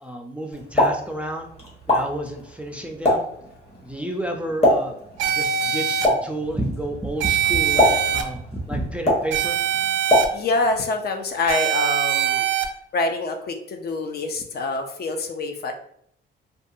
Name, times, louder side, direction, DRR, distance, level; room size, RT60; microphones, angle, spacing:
voice 1, 0.0-1.5 1.9-3.2 3.8-5.0 5.3-9.6, right 1 dB, 5° right, 2 dB, 0.4 m, -30 dB
Explosion, 0.5-10.8, left 1 dB, 35° left, 1.2 m, -25 dB
sound 1, 5.2-6.1 7.2-8.2 9.3-10.2 11.5-12.6, right 9 dB, 80° right, 0.4 m, -22 dB
voice 2, 10.3-12.4 12.9-15.7, left 3 dB, 55° left, 5 dB, 0.5 m, -25 dB
2.6 x 2.2 x 2.6 m, 0.68 s
cardioid pair, 90°, 20 cm